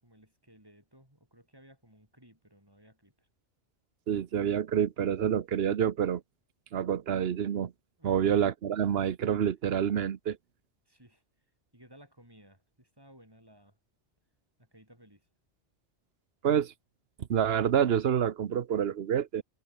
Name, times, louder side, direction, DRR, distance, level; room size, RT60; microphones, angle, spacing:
voice 1, 0.0-3.3 8.0-8.4 10.9-11.2 11.7-13.8 14.6-15.3, equal, 20° right, 7.7 m, -58 dB
voice 2, 4.1-6.2 6.7-7.7 8.0-10.4 16.4-16.7 17.3-19.4, right 9 dB, 65° right, 1.1 m, -27 dB
omnidirectional pair, 1.1 m